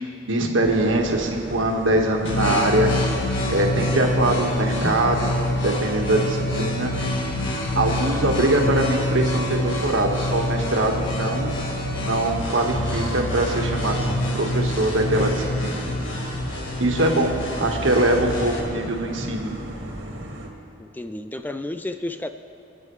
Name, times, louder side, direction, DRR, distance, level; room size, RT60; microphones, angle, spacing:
voice 1, 0.2-2.9 3.5-5.3 5.6-6.9 7.7-11.6 11.9-15.9 16.8-19.5, right 1 dB, 85° right, 1 dB, 1.5 m, -22 dB
sound 1, 0.6-20.5, equal, 70° right, 2.0 m, -35 dB
sound 2, 2.2-18.6, left 1 dB, 85° left, 1.8 m, -26 dB
voice 2, 20.8-22.3, left 1 dB, 10° left, 9 dB, 0.3 m, -31 dB
25.5 x 9.2 x 3.2 m, 2.8 s
head